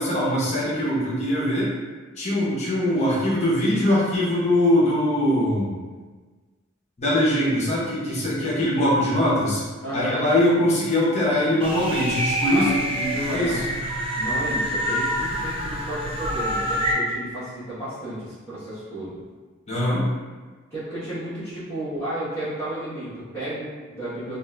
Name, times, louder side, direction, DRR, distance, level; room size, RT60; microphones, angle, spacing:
voice 1, 0.0-1.7 2.2-5.7 7.0-9.6 9.9-12.7 13.3-13.6 19.7-20.0, left 1 dB, 35° left, -7 dB, 0.7 m, -22 dB
voice 2, 9.8-10.3 12.5-13.7 14.1-19.2 20.7-24.4, right 1 dB, 10° left, -16 dB, 1.0 m, -32 dB
sound 1, 11.6-16.9, equal, 25° right, 0.4 m, -26 dB
2.5 x 2.4 x 3.2 m, 1.4 s
head